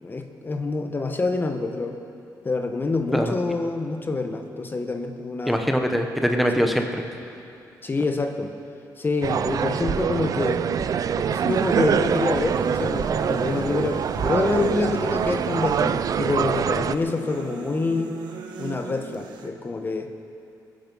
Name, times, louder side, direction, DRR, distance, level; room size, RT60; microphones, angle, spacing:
voice 1, 0.0-2.0 2.4-5.6 6.3-6.7 7.8-8.5 9.0-10.6 11.2-18.2 18.6-20.1, left 3 dB, 30° left, 6 dB, 1.0 m, -27 dB
voice 2, 5.5-7.0, equal, ahead, 4 dB, 1.0 m, -22 dB
sound 1, 9.2-17.0, right 7 dB, 55° right, 0.5 m, -24 dB
sound 2, 11.5-19.5, right 6 dB, 90° right, 1.4 m, -38 dB
22.5 x 10.5 x 5.4 m, 2.6 s
cardioid pair, 115°, 7 cm